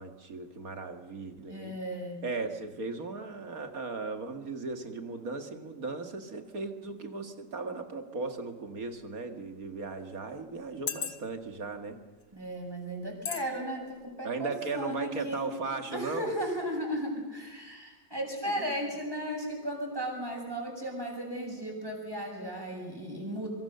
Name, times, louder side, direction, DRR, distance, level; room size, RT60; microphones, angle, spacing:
voice 1, 0.0-1.8 2.2-12.0 14.2-16.3 18.5-18.9, right 3 dB, 50° right, 6 dB, 2.4 m, -37 dB
voice 2, 1.5-2.2 12.3-15.5 15.9-23.5, equal, 10° right, 0 dB, 7.2 m, -35 dB
sound 1, 8.8-8.9 9.7-9.8 10.6-11.5 12.2-12.4 13.3-13.5 13.9-14.0, left 8 dB, 70° left, 1.8 m, -35 dB
25.5 x 24.0 x 6.9 m, 1.2 s
omnidirectional pair, 1.9 m